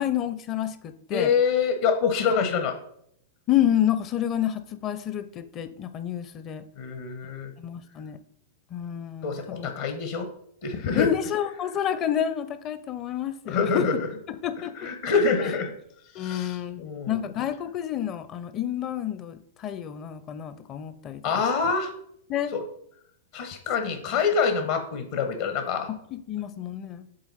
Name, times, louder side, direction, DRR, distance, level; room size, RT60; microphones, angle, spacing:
voice 1, 0.0-1.3 3.5-6.6 7.6-8.2 8.7-9.7 10.9-13.9 14.3-14.7 16.1-21.2 22.3-22.5 23.8-23.9 26.1-27.1, left 10 dB, 35° left, 12 dB, 0.6 m, -29 dB
voice 2, 1.1-2.8 6.8-7.5 9.2-10.3 10.6-11.1 13.5-14.1 14.8-15.7 16.2-17.2 21.2-21.9 22.5-22.6 23.3-25.9, left 5 dB, 55° left, 6 dB, 1.1 m, -26 dB
7.8 x 3.6 x 4.2 m, 0.70 s
figure-of-eight pair, 100°, 0 cm